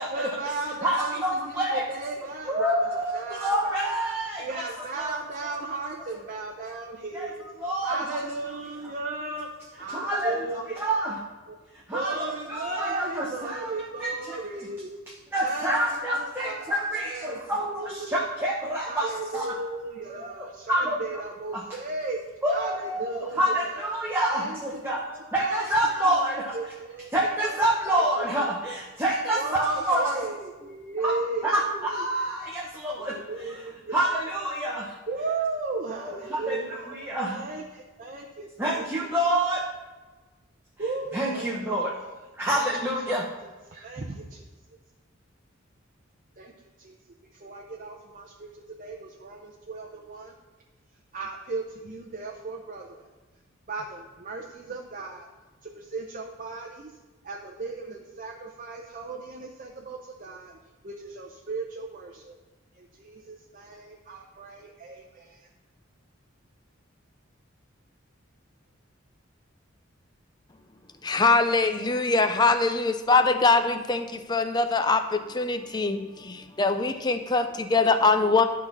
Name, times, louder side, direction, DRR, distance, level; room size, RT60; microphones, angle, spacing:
voice 1, 0.1-4.0 4.4-7.4 7.8-9.5 9.8-11.6 11.9-15.0 15.4-18.2 18.8-22.2 22.5-23.9 24.3-28.3 29.3-32.1 32.8-34.2 35.1-39.2 40.8-42.1 42.5-44.5 46.4-46.5 46.8-47.0 47.2-50.3 51.1-53.1 53.7-55.3 55.6-56.9 57.2-60.6 60.8-62.4 62.8-65.5, right 3 dB, 40° right, 0 dB, 0.7 m, -36 dB
voice 2, 0.8-1.9 2.5-4.7 5.0-5.1 7.1-7.3 7.6-8.2 8.8-8.9 9.9-10.4 10.8-11.1 11.9-13.7 14.0-14.4 15.3-19.6 20.2-20.3 20.7-21.0 21.5-21.6 22.4-25.0 25.3-26.5 27.1-30.1 31.0-31.1 31.4-33.2 33.5-33.6 33.9-34.9 36.0-37.4 38.6-39.6 41.1-41.9 42.4-43.2, right 1 dB, 10° right, -3 dB, 0.9 m, -27 dB
voice 3, 71.0-78.4, left 3 dB, 20° left, 8 dB, 0.5 m, -23 dB
11.0 x 4.0 x 5.9 m, 1.2 s
head